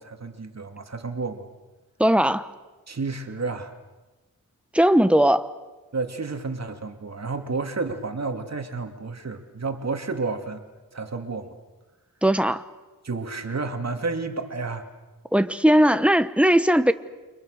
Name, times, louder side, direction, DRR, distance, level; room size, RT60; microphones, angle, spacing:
voice 1, 0.0-1.5 2.9-3.7 5.9-10.6 10.9-11.5 13.0-14.9, right 3 dB, 50° right, 2.5 m, -31 dB
voice 2, 2.0-2.5 4.7-5.5 12.2-12.6 15.3-16.9, equal, 5° right, 1.2 m, -18 dB
29.5 x 25.0 x 6.6 m
wide cardioid pair, 80°, 35 cm